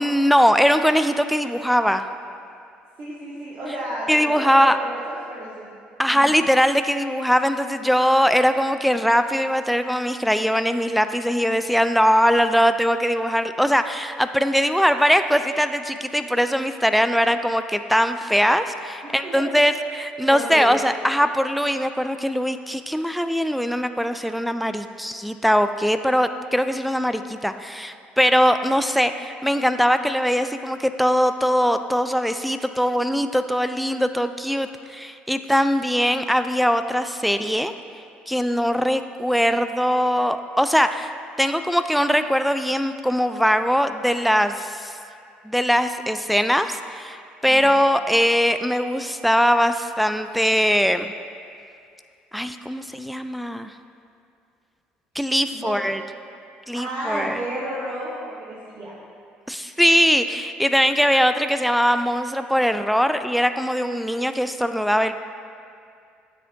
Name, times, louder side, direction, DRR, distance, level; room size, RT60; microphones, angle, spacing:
voice 1, 0.0-2.0 4.1-4.8 6.0-37.7 38.3-41.1 41.4-44.9 45.4-47.2 47.4-51.1 52.3-53.7 55.2-56.0 56.7-57.4 59.5-65.1, equal, ahead, 9 dB, 0.3 m, -21 dB
voice 2, 3.0-5.7 6.1-6.3 19.0-19.5 20.3-20.7 47.5-47.7 55.6-55.8 56.7-58.9, right 1 dB, 45° right, -7 dB, 1.4 m, -32 dB
12.5 x 4.2 x 2.7 m, 2.4 s
figure-of-eight pair, 55°, 5 cm